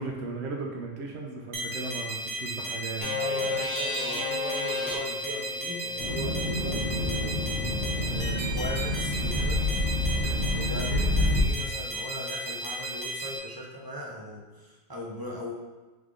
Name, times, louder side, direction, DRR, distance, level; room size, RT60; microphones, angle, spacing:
voice 1, 0.0-3.6, right 3 dB, 85° right, 0 dB, 0.9 m, -36 dB
sound 1, 1.5-13.4, right 1 dB, 65° right, 1.1 m, -35 dB
sound 2, 3.0-10.9, left 3 dB, 60° left, 1.0 m, -36 dB
voice 2, 3.2-7.4 8.0-9.7 10.5-15.5, equal, 30° right, -2 dB, 0.5 m, -38 dB
sound 3, 6.0-11.4, left 1 dB, 85° left, 1.3 m, -28 dB
3.6 x 3.3 x 3.6 m, 1.2 s
omnidirectional pair, 1.1 m